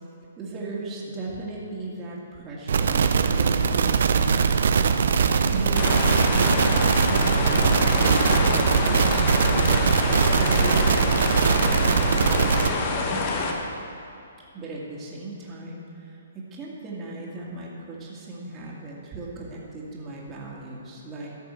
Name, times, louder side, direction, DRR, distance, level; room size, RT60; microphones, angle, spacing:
voice 1, 0.4-3.0 3.4-4.4 5.5-9.4 10.3-13.4 14.5-21.3, right 2 dB, 25° right, -4 dB, 2.1 m, -37 dB
sound 1, 2.7-12.7, right 6 dB, 60° right, 0.5 m, -21 dB
sound 2, 5.7-13.5, left 3 dB, 40° left, 1.2 m, -27 dB
13.5 x 6.6 x 4.6 m, 2.7 s
figure-of-eight pair, 125°, 0 cm